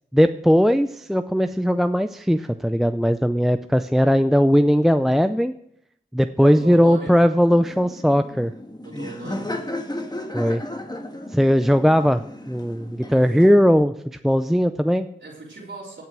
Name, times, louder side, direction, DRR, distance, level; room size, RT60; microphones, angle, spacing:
voice 1, 0.1-5.5 6.1-8.5 10.3-10.6 11.3-13.9 14.2-15.1, equal, ahead, 9 dB, 0.5 m, -18 dB
voice 2, 6.4-7.1 8.8-9.5 15.2-16.0, right 2 dB, 80° right, -5 dB, 3.4 m, -38 dB
Laughter, 7.5-13.8, left 1 dB, 20° left, 1.6 m, -34 dB
16.5 x 5.8 x 6.2 m, 0.73 s
cardioid pair, 45°, 19 cm